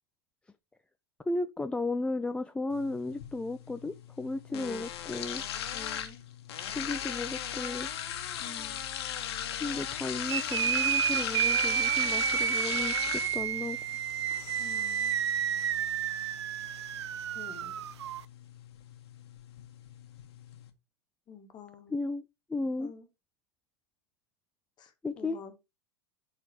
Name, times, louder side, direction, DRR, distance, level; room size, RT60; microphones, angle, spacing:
voice 1, 1.3-5.4 6.7-7.9 9.6-13.8 21.9-22.2 22.5-22.9 25.0-25.4, left 2 dB, 5° left, 0.4 m, -34 dB
sound 1, 2.7-20.7, left 9 dB, 65° left, 1.4 m, -39 dB
voice 2, 4.5-4.8 5.7-6.2 8.4-8.8 14.6-15.1 17.3-17.8 21.3-22.0 22.8-23.1 24.8-25.5, left 6 dB, 30° left, 1.8 m, -48 dB
sound 2, 10.3-18.2, right 10 dB, 75° right, 0.5 m, -30 dB
7.7 x 4.1 x 4.4 m
hypercardioid pair, 100°, 14 cm